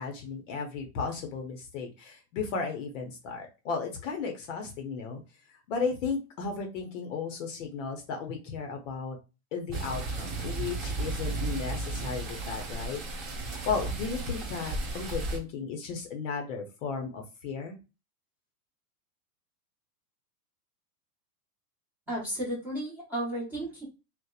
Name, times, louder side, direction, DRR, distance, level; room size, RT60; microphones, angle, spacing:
voice 1, 0.0-5.2 5.5-9.2 9.5-13.2 13.7-17.8, left 5 dB, 50° left, 3 dB, 0.6 m, -35 dB
sound 1, 9.7-15.4, right 3 dB, 30° right, 1.1 m, -34 dB
voice 2, 22.1-23.8, right 1 dB, 5° right, -8 dB, 0.8 m, -33 dB
2.7 x 2.0 x 2.3 m, 0.29 s
supercardioid pair, 150°, 48 cm